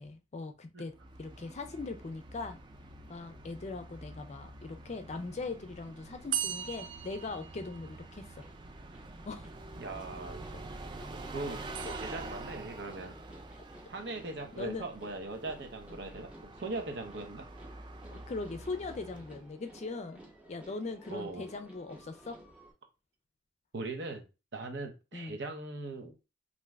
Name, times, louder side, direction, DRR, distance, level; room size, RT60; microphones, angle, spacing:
voice 1, 0.0-2.6 3.1-8.4 9.3-9.5 14.5-14.8 18.3-20.2 20.5-22.4 25.1-25.4, left 3 dB, 40° left, 8 dB, 0.4 m, -40 dB
Bus, 0.9-19.5, right 2 dB, 25° right, 0.4 m, -47 dB
sound 1, 6.3-8.3 11.7-12.8, right 9 dB, 90° right, 0.5 m, -39 dB
sound 2, 8.4-22.7, right 1 dB, 10° right, 0.9 m, -56 dB
voice 2, 9.7-10.5 11.1-11.6 12.0-13.2 13.9-17.5 21.1-21.5 23.7-24.2 24.5-26.1, right 2 dB, 70° right, 4 dB, 0.8 m, -40 dB
2.6 x 2.4 x 3.2 m, 0.29 s
head